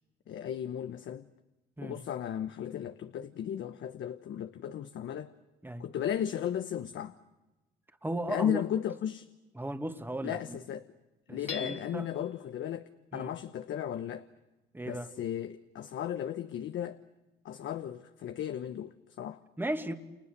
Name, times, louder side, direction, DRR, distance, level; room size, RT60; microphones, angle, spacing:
voice 1, 0.3-1.2 1.8-5.3 5.8-7.1 8.3-9.3 10.2-10.9 11.3-14.2 14.8-17.0 17.4-19.4, left 10 dB, 70° left, 1.1 m, -35 dB
voice 2, 8.0-8.6 9.6-10.6 11.3-12.1 13.1-13.3 14.7-15.1 19.6-19.9, right 1 dB, 10° right, 2.1 m, -36 dB
Hammer / Chink clink, 11.5-12.3, left 5 dB, 35° left, 1.8 m, -41 dB
30.0 x 29.5 x 6.8 m
cardioid pair, 90°, 20 cm